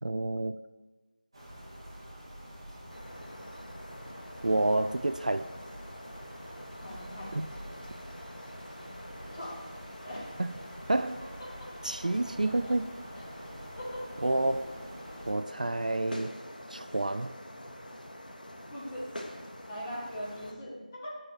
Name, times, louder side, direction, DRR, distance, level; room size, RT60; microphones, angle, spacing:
voice 1, 0.0-0.6 4.4-5.5 7.3-7.5 10.4-10.5 10.9-11.2 11.8-12.9 14.2-14.7 15.3-16.3 16.7-17.4, right 2 dB, 60° right, 11 dB, 0.3 m, -29 dB
sound 1, 1.3-15.3, equal, 30° right, 1.8 m, -47 dB
sound 2, 2.9-20.5, left 1 dB, 70° left, 1.5 m, -46 dB
voice 2, 6.8-7.3 9.3-9.6 10.0-10.3 11.4-11.9 12.4-12.7 13.2-13.3 13.8-14.0 18.7-19.1 19.7-21.1, equal, 15° left, -7 dB, 1.7 m, -41 dB
9.6 x 4.4 x 6.7 m, 1.2 s
figure-of-eight pair, 170°, 5 cm